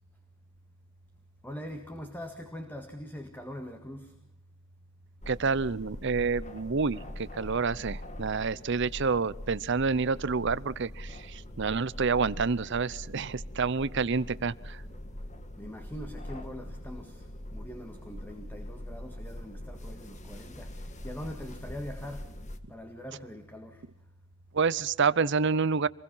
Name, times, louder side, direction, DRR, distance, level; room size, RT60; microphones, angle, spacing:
voice 1, 1.4-4.1 15.6-17.2 17.5-20.7 21.0-22.3 22.7-23.8, equal, 10° left, 1.9 m, -42 dB
sound 1, 5.2-22.6, left 1 dB, 35° left, 1.9 m, -43 dB
voice 2, 5.3-14.8 24.5-25.9, right 5 dB, 60° right, 0.7 m, -28 dB
26.5 x 21.0 x 5.7 m
head